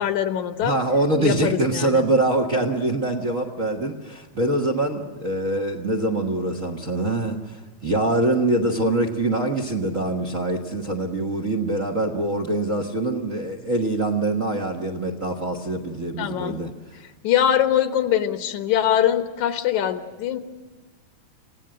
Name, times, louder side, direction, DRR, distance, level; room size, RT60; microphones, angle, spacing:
voice 1, 0.0-0.8 1.2-2.1 16.2-16.6 17.0-20.4, left 10 dB, 80° left, 8 dB, 2.6 m, -23 dB
voice 2, 0.6-16.7, right 2 dB, 45° right, 2 dB, 1.0 m, -24 dB
27.0 x 17.0 x 7.8 m, 1.3 s
omnidirectional pair, 3.3 m